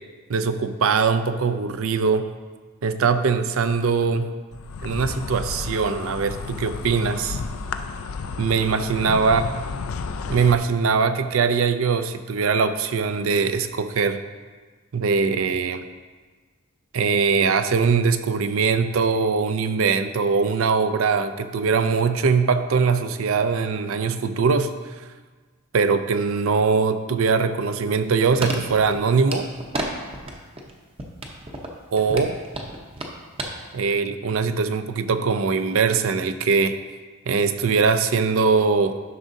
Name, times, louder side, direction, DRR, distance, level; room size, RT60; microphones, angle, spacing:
voice 1, 0.3-2.3 2.8-4.3 4.8-7.4 8.4-9.4 10.3-14.2 14.9-15.8 16.9-24.7 25.7-29.5 31.9-32.4 33.7-36.8 37.3-39.0, right 5 dB, 75° right, 10 dB, 0.5 m, -21 dB
Insect, 4.5-10.5, left 4 dB, 80° left, 0.4 m, -32 dB
sound 1, 27.8-29.9 30.1-30.7 31.0-33.5 33.8-33.9, right 2 dB, 25° right, 0.7 m, -32 dB
11.0 x 6.2 x 2.7 m, 1.4 s
head